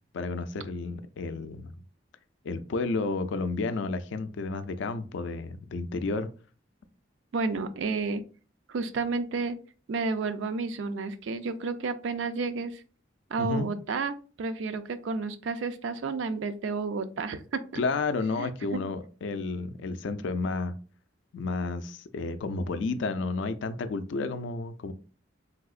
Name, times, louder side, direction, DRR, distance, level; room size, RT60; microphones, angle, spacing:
voice 1, 0.1-1.7 2.4-6.3 13.4-13.7 17.7-20.8 21.3-24.9, left 3 dB, 65° left, 0.3 m, -31 dB
voice 2, 7.3-8.2 8.7-9.6 9.9-12.8 13.3-17.4 18.4-18.5, right 4 dB, 70° right, 0.4 m, -31 dB
3.4 x 2.7 x 2.4 m
head